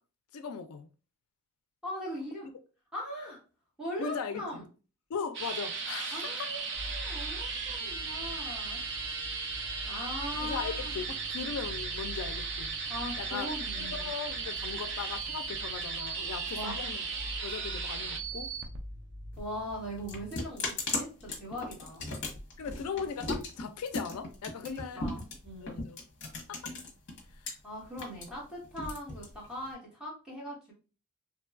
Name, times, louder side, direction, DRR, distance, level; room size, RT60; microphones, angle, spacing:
voice 1, 0.3-0.9 2.4-2.5 4.0-4.5 5.1-6.5 10.3-12.7 13.2-13.5 13.7-17.1 17.4-18.5 22.6-25.0 25.6-26.0 26.5-26.7, left 6 dB, 80° left, 0.4 m, -38 dB
voice 2, 1.8-2.5 2.9-3.4 3.8-4.6 6.1-8.8 9.8-11.0 12.9-14.1 16.5-16.8 19.4-20.6 20.9-21.1 21.4-22.1 24.6-25.8 27.6-30.7, equal, 5° right, 1.0 m, -40 dB
sound 1, 5.3-18.8 19.3-19.4, right 4 dB, 50° right, 0.4 m, -36 dB
sound 2, 6.7-20.5, left 1 dB, 85° right, 1.1 m, -45 dB
sound 3, 19.3-27.5 27.8-29.7, left 2 dB, 50° left, 0.8 m, -37 dB
2.9 x 2.2 x 2.4 m
head